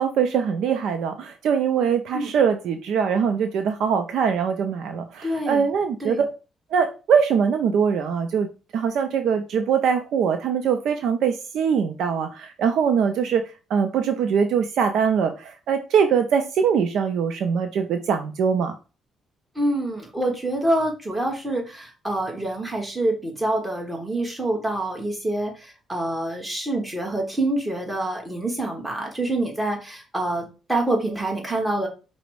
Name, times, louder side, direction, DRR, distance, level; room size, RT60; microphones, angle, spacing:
voice 1, 0.0-6.2 6.7-13.4 13.7-18.7, right 7 dB, 75° right, 7 dB, 0.4 m, -22 dB
voice 2, 5.2-5.7 6.0-6.2 19.5-31.9, right 1 dB, 10° right, 0 dB, 1.2 m, -26 dB
5.0 x 2.1 x 4.6 m, 0.32 s
cardioid pair, 120°, 0 cm